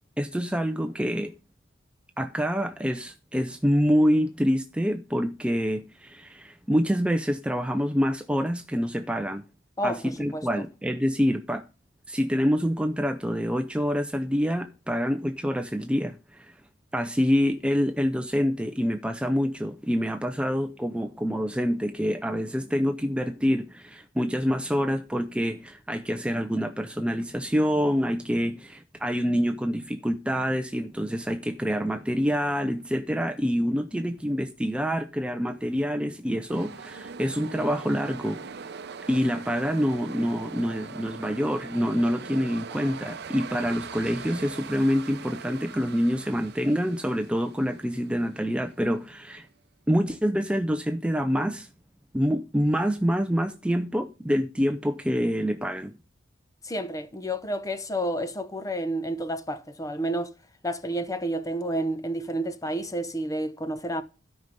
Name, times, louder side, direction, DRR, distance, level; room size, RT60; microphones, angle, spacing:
voice 1, 0.2-1.3 2.2-9.4 9.8-11.6 12.1-16.5 16.9-38.4 39.1-49.5 49.9-51.7 52.1-55.9, equal, 5° right, 0.5 m, -26 dB
voice 2, 9.8-10.4 56.6-60.3 60.6-64.0, right 1 dB, 15° left, 0.8 m, -30 dB
sound 1, 36.5-49.4, right 5 dB, 55° right, 0.7 m, -42 dB
12.5 x 5.3 x 5.2 m
head